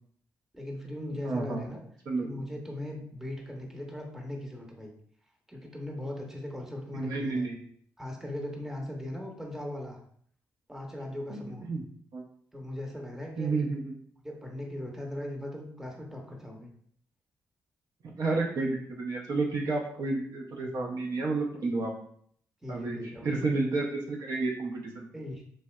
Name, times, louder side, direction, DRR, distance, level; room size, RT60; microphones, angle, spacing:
voice 1, 0.5-1.8 2.2-4.9 5.5-7.5 8.0-10.0 10.7-11.6 12.5-13.7 14.2-16.7 22.6-23.5 25.1-25.4, left 1 dB, 5° right, 1 dB, 0.8 m, -39 dB
voice 2, 1.2-1.6 2.1-2.3 7.0-7.6 11.3-11.4 11.7-11.8 12.1-12.2 13.4-13.9 18.0-21.9 22.7-25.1, right 3 dB, 65° right, -1 dB, 0.6 m, -31 dB
3.1 x 2.6 x 2.2 m, 0.63 s
supercardioid pair, 50°, 7 cm